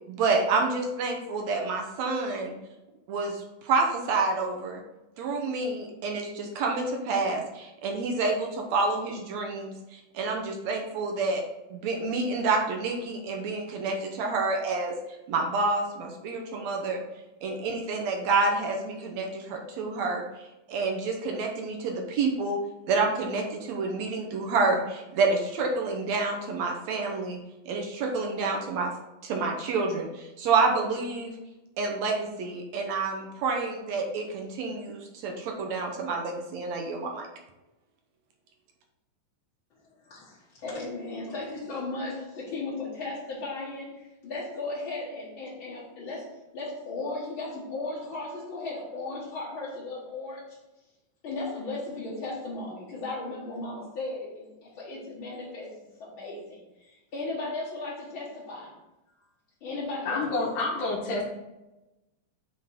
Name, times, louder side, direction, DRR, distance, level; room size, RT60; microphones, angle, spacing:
voice 1, 0.1-2.5 3.1-4.8 5.2-11.4 11.7-14.9 15.3-17.0 17.4-22.6 22.9-27.4 27.6-28.9 29.2-31.4 31.8-37.3, right 3 dB, 70° right, 2 dB, 1.7 m, -28 dB
voice 2, 40.0-50.6 51.2-58.7 59.6-60.3, left 2 dB, 50° left, -8 dB, 1.6 m, -36 dB
voice 3, 60.0-61.2, left 3 dB, 85° left, -4 dB, 3.1 m, -28 dB
7.5 x 3.7 x 4.2 m, 1.0 s
omnidirectional pair, 3.9 m